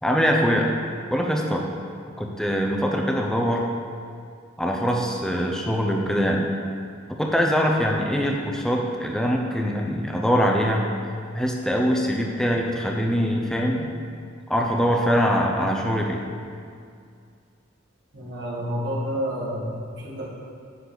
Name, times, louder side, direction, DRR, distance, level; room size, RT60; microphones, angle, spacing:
voice 1, 0.0-0.7 1.1-1.7 2.2-3.7 4.6-6.5 7.2-10.9 11.3-13.9 14.5-16.2, equal, 5° left, 0 dB, 0.7 m, -23 dB
voice 2, 18.1-20.2, equal, 60° right, -5 dB, 2.0 m, -29 dB
10.0 x 6.5 x 4.1 m, 2.3 s
head